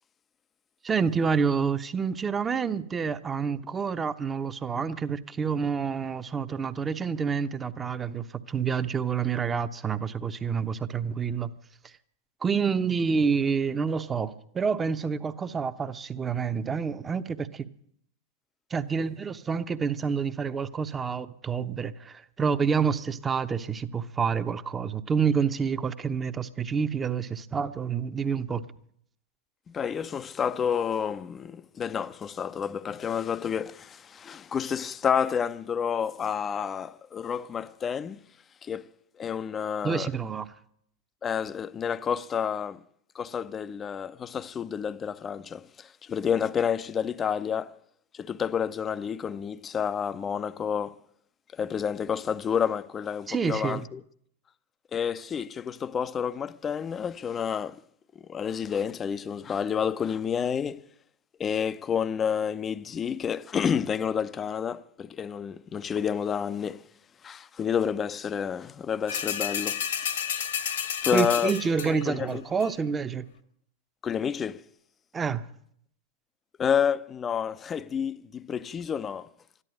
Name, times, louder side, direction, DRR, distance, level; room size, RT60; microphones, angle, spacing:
voice 1, 0.8-11.5 11.8-11.9 12.4-17.7 18.7-28.7 39.8-40.5 53.3-53.9 71.1-73.3 75.1-75.5, right 6 dB, 20° right, 0.9 m, -28 dB
voice 2, 29.7-38.2 38.6-38.9 39.2-40.1 41.2-42.8 43.1-47.8 48.1-51.0 51.5-54.0 54.9-57.8 58.3-60.8 61.4-66.8 67.2-70.1 71.0-71.5 71.9-72.4 74.0-74.6 76.6-79.3, left 7 dB, 25° left, 0.6 m, -29 dB
sound 1, 69.1-72.1 72.6-72.7, left 8 dB, 75° left, 1.7 m, -31 dB
13.5 x 11.5 x 9.1 m
hypercardioid pair, 100°, 0 cm